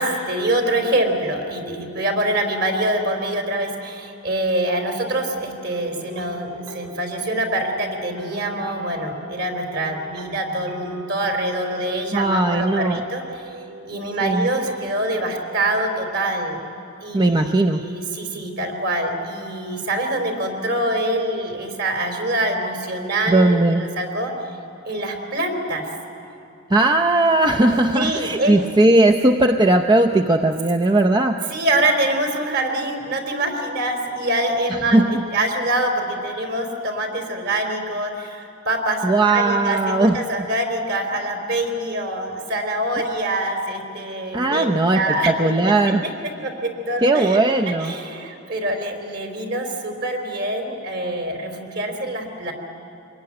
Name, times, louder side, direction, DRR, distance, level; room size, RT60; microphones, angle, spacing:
voice 1, 0.0-13.4 13.9-16.6 17.0-24.3 24.8-25.9 27.9-28.6 31.5-35.0 35.3-45.7 46.4-47.4 47.8-52.5, right 1 dB, 55° right, 5 dB, 3.8 m, -25 dB
sound 1, 4.3-16.1, right 2 dB, 85° right, 3.4 m, -42 dB
voice 2, 12.1-13.0 14.2-14.5 17.1-17.9 23.3-23.8 26.7-31.4 34.9-35.2 39.0-40.2 44.3-46.0 47.0-48.0, right 2 dB, 20° right, 4 dB, 0.6 m, -18 dB
25.5 x 21.5 x 9.8 m, 2.7 s
head